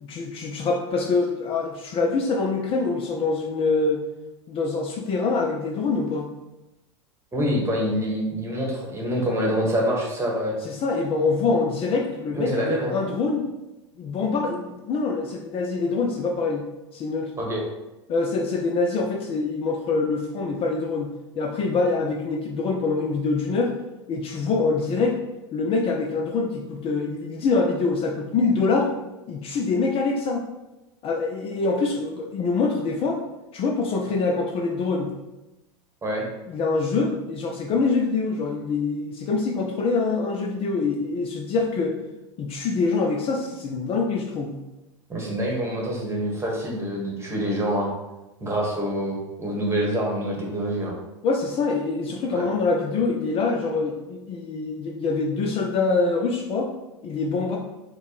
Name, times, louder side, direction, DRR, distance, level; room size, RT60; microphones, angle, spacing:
voice 1, 0.0-4.0 4.5-6.3 10.6-13.5 14.0-16.6 16.9-17.3 18.1-21.1 21.4-23.7 24.1-25.2 25.5-28.9 29.3-30.4 31.0-33.2 33.5-35.1 36.5-42.0 42.4-44.6 51.2-56.7 57.0-57.6, left 4 dB, 35° left, 1 dB, 0.5 m, -25 dB
voice 2, 7.3-10.5 12.3-12.9 17.4-17.6 36.0-36.2 45.1-47.9 48.4-50.9 52.3-52.5, equal, 15° right, -2 dB, 1.3 m, -26 dB
4.5 x 2.2 x 3.1 m, 1.0 s
hypercardioid pair, 85°, 16 cm